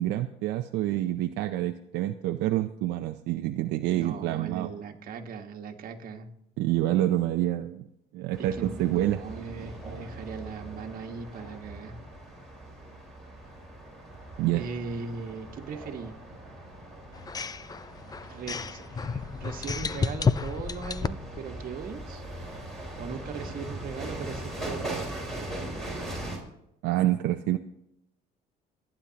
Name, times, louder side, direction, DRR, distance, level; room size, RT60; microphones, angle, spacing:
voice 1, 0.0-4.7 6.6-7.8 8.1-9.2 14.4-14.6 26.8-27.6, right 14 dB, 85° right, 6 dB, 0.6 m, -27 dB
voice 2, 3.9-6.3 8.4-12.0 14.5-16.2 18.2-22.2 22.9-25.5, right 5 dB, 55° right, 4 dB, 1.5 m, -39 dB
sound 1, 8.3-26.4, right 1 dB, ahead, 4.5 m, -40 dB
sound 2, 17.1-21.4, left 5 dB, 20° left, 0.5 m, -31 dB
26.5 x 9.8 x 2.9 m, 0.79 s
cardioid pair, 110°, 17 cm